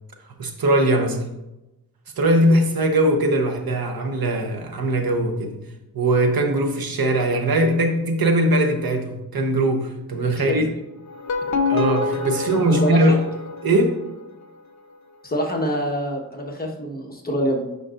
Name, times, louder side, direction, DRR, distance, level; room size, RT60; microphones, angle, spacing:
voice 1, 0.4-1.2 2.2-5.6 5.9-10.6 11.7-13.2 13.6-14.0, right 1 dB, 85° right, 5 dB, 1.0 m, -20 dB
sound 1, 11.1-14.2, left 4 dB, 55° left, 0.8 m, -26 dB
voice 2, 12.4-13.2 15.2-17.6, equal, 25° left, -1 dB, 1.2 m, -26 dB
11.0 x 5.0 x 2.5 m, 0.95 s
wide cardioid pair, 140°, 35 cm